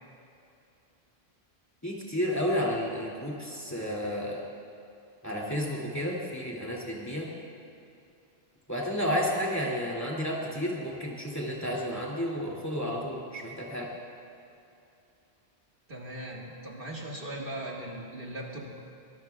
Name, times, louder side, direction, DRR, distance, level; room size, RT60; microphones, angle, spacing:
voice 1, 1.8-4.4 5.2-7.3 8.7-13.9, equal, 15° left, -4 dB, 2.7 m, -31 dB
voice 2, 15.9-18.7, right 1 dB, 60° right, -2 dB, 2.0 m, -39 dB
23.0 x 20.5 x 2.4 m, 2.7 s
omnidirectional pair, 1.1 m